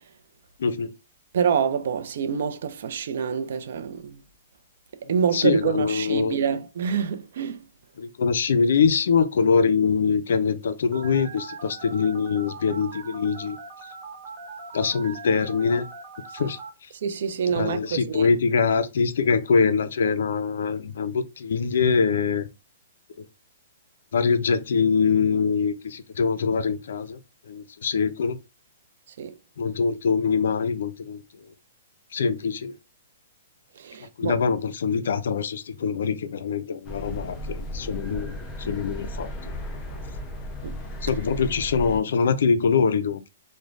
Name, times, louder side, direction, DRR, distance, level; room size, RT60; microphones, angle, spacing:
voice 1, 0.6-0.9 5.3-6.4 8.0-13.6 14.7-15.9 16.3-16.6 17.5-22.5 24.1-27.2 27.5-28.4 29.6-31.2 32.1-32.7 34.2-39.5 41.0-43.3, left 5 dB, 75° left, 0.4 m, -23 dB
voice 2, 1.3-4.2 5.1-7.6 16.4-16.5 17.0-18.3 29.2-29.3 33.8-34.4 40.6-40.8, right 7 dB, 65° right, 0.3 m, -26 dB
Telephone, 10.9-16.7, right 4 dB, 30° right, 0.7 m, -41 dB
sound 1, 36.8-42.0, equal, 20° left, 0.6 m, -35 dB
3.1 x 2.1 x 2.5 m
hypercardioid pair, 150°, 0 cm